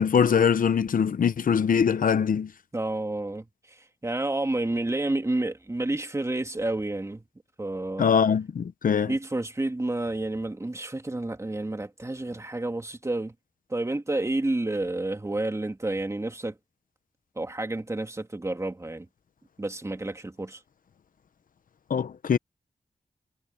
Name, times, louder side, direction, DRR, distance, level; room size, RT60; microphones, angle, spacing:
voice 1, 0.0-2.5 8.0-9.1 21.9-22.4, left 7 dB, 85° left, 0.9 m, -22 dB
voice 2, 2.7-7.2 7.6-8.1 9.1-13.3 13.7-16.5 17.4-19.1 19.6-20.6, right 2 dB, 20° right, 2.4 m, -30 dB
wide cardioid pair, 80°, 14 cm